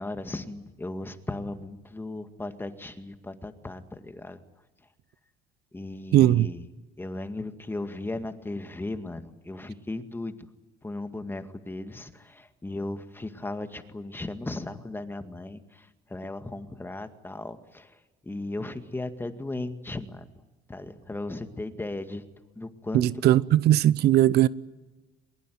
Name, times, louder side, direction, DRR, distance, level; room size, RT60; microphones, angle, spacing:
voice 1, 0.0-4.4 5.7-6.6 7.0-10.3 10.8-20.3 20.7-22.2 22.6-23.0, left 2 dB, 10° left, 2.0 m, -36 dB
voice 2, 6.1-6.5 22.9-24.5, right 13 dB, 75° right, 0.8 m, -19 dB
22.5 x 22.5 x 9.4 m
cardioid pair, 110°, 17 cm